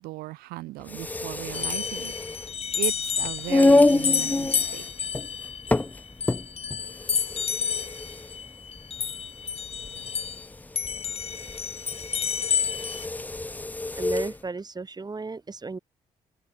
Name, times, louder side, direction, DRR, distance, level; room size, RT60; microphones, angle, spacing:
voice 1, 0.0-2.1 2.7-5.1, right 20 dB, 80° right, 0.5 m, -37 dB
sound 1, 0.8-14.4, left 2 dB, 10° left, 0.4 m, -27 dB
sound 2, 1.5-10.5 10.8-13.1, left 6 dB, 40° left, 0.7 m, -30 dB
sound 3, 3.0-13.2, right 7 dB, 55° right, 7.5 m, -67 dB
voice 2, 14.0-15.8, right 4 dB, 25° right, 1.3 m, -34 dB
open air
hypercardioid pair, 50°, 16 cm